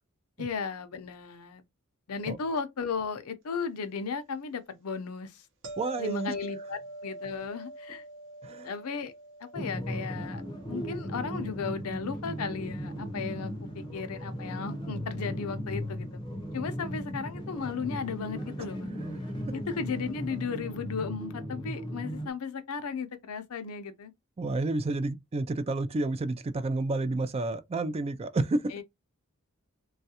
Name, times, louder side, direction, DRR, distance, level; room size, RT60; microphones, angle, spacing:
voice 1, 0.4-1.6 2.1-5.4 6.0-8.0 8.6-9.1 9.4-10.4 10.7-16.2 16.5-18.9 19.5-24.1 28.7-28.8, left 5 dB, 70° left, 0.6 m, -35 dB
sound 1, 5.6-12.6 17.9-18.1, right 1 dB, 60° right, 0.8 m, -45 dB
voice 2, 5.8-6.3 8.4-8.7 24.4-28.7, right 2 dB, 25° right, 0.3 m, -30 dB
sound 2, 9.5-22.3, equal, 20° left, 0.6 m, -37 dB
3.1 x 2.3 x 2.8 m
head